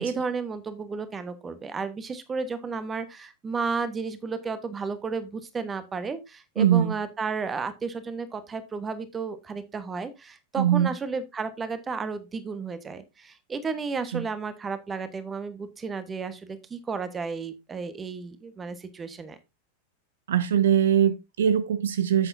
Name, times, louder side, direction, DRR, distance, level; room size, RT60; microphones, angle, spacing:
voice 1, 0.0-19.4, right 4 dB, 20° right, 1.4 m, -33 dB
voice 2, 6.6-6.9 10.6-10.9 14.1-14.2 20.3-22.3, right 9 dB, 60° right, 0.5 m, -22 dB
9.7 x 8.0 x 2.7 m
figure-of-eight pair, 90°, 0 cm